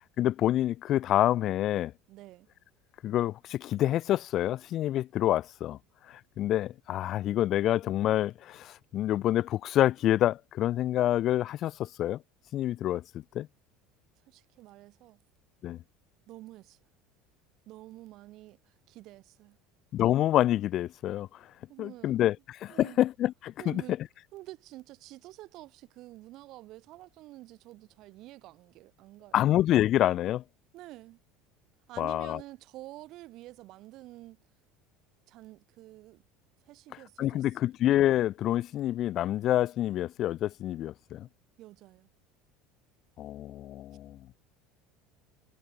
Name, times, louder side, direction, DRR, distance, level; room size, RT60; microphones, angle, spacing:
voice 1, 0.2-1.9 3.0-5.8 6.4-12.2 12.5-13.5 15.6-15.8 19.9-21.3 21.8-22.3 22.6-23.8 29.3-30.4 32.0-32.4 37.2-41.3 43.2-44.2, left 13 dB, 45° left, 1.3 m, -27 dB
voice 2, 2.1-2.5 14.3-15.2 16.3-16.8 17.7-19.6 21.7-22.2 22.7-23.0 23.6-24.0 24.3-29.4 30.7-31.2 31.9-34.4 35.3-36.2 36.6-37.6 41.6-42.1, right 17 dB, 50° right, 5.3 m, -48 dB
cardioid pair, 145°, 0 cm